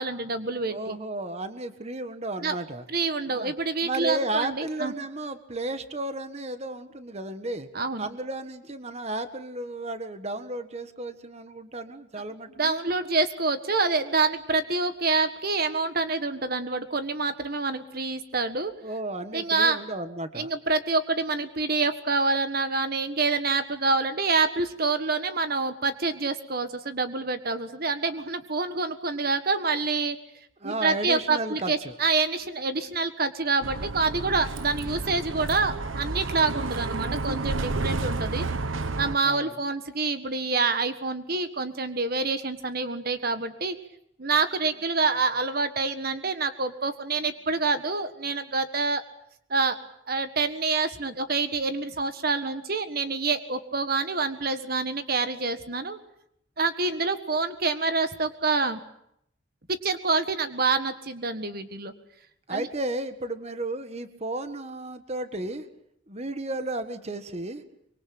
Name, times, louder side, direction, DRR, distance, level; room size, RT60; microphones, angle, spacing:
voice 1, 0.0-1.0 2.4-2.5 2.9-4.9 7.7-8.1 12.6-18.7 19.3-19.8 20.3-30.2 30.6-38.5 39.0-43.7 44.2-49.0 49.5-49.8 50.1-56.0 56.6-58.8 59.7-61.9 62.5-62.7, right 3 dB, 50° right, 9 dB, 1.5 m, -27 dB
voice 2, 0.7-2.8 3.3-3.5 3.8-7.7 8.0-12.8 18.8-20.5 30.6-31.9 39.2-39.5 62.5-65.7 66.1-67.6, right 2 dB, 30° right, 9 dB, 1.6 m, -33 dB
Bus, 33.6-39.2, right 3 dB, 80° right, 1.2 m, -31 dB
25.0 x 24.0 x 8.7 m, 0.73 s
head